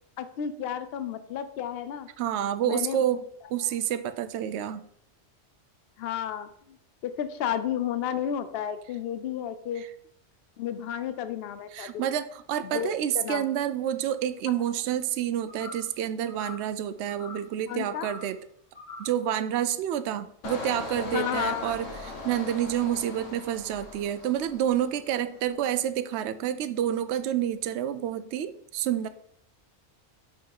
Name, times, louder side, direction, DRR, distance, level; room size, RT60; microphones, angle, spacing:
voice 1, 0.2-2.1 2.6-3.0 6.0-6.8 7.0-9.8 10.6-12.1 12.6-13.5 17.7-18.1 21.1-21.8, left 9 dB, 60° left, 12 dB, 0.8 m, -32 dB
voice 2, 2.2-3.2 3.5-4.8 11.7-18.4 19.0-29.1, right 10 dB, 70° right, 12 dB, 0.8 m, -29 dB
sound 1, 15.5-15.9 16.3-16.7 17.1-17.5 17.9-18.3 18.7-19.2, left 3 dB, 40° left, 2.5 m, -43 dB
Engine, 20.4-25.1 25.5-25.8, left 3 dB, 85° left, 1.4 m, -40 dB
5.5 x 4.7 x 5.6 m, 0.69 s
omnidirectional pair, 1.3 m